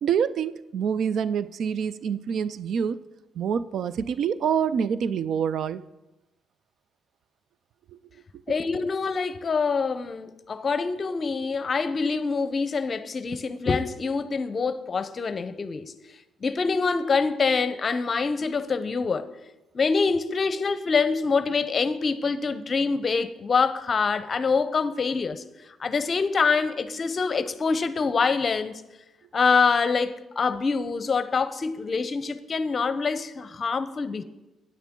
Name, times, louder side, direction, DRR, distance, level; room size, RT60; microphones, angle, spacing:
voice 1, 0.0-3.0 3.4-5.8, right 7 dB, 65° right, 0.4 m, -26 dB
voice 2, 8.5-15.9 16.4-19.3 19.7-25.4 25.8-28.8 29.3-34.2, left 4 dB, 40° left, 0.7 m, -25 dB
13.0 x 9.4 x 3.7 m
cardioid pair, 90°, 0 cm